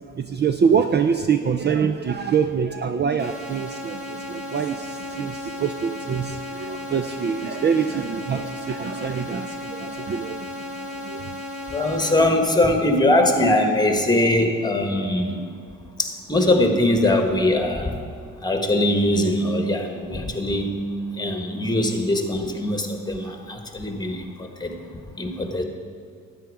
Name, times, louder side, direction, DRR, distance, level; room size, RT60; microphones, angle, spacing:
voice 1, 0.0-11.4, right 6 dB, 35° right, 8 dB, 0.5 m, -25 dB
sound 1, 3.2-12.2, left 1 dB, 5° right, 3.2 m, -34 dB
voice 2, 11.7-15.4 16.0-17.9 18.4-20.8 21.2-24.7 25.2-25.6, left 1 dB, 15° left, 4 dB, 1.5 m, -21 dB
12.5 x 9.3 x 4.9 m, 2.3 s
cardioid pair, 90°, 30 cm